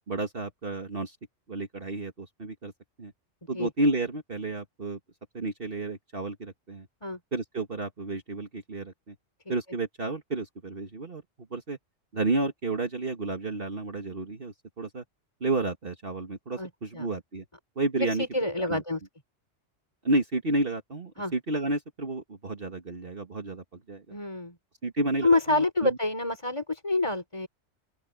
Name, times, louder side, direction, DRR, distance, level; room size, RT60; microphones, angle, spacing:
voice 1, 0.1-1.2 1.5-2.7 3.0-3.1 3.5-5.0 5.3-6.9 7.3-9.2 9.5-11.2 11.5-11.8 12.1-15.0 15.4-17.5 17.8-18.8 20.0-24.2 24.8-26.0, right 2 dB, 45° right, 2.0 m, -31 dB
voice 2, 16.6-17.1 18.0-19.0 21.2-21.3 24.1-24.6 25.2-27.5, left 2 dB, 25° left, 3.6 m, -27 dB
open air
omnidirectional pair, 1.3 m